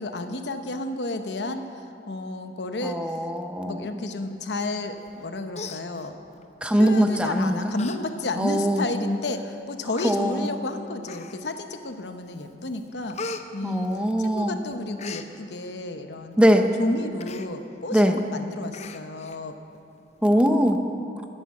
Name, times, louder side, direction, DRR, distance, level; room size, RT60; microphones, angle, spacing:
voice 1, 0.0-3.2 3.6-6.2 6.8-13.2 13.5-16.4 16.8-19.5, left 2 dB, 70° left, 7 dB, 0.9 m, -32 dB
voice 2, 2.8-3.8 6.6-7.6 8.4-8.8 10.0-10.5 13.6-14.6 16.4-16.7 17.9-18.2 20.2-20.8, equal, 5° right, 6 dB, 0.6 m, -21 dB
Human voice, 5.1-5.2 5.5-6.4 7.2-7.3 7.7-8.0 8.4-8.5 9.3-9.4 9.9-10.2 11.0-11.6 12.1-12.4 12.7-14.4 14.7-15.3 17.2-17.5 17.9-18.0 18.2-18.4 18.7-19.4 19.7-19.8, left 4 dB, 40° left, 0.6 m, -38 dB
12.5 x 9.9 x 7.6 m, 2.7 s
head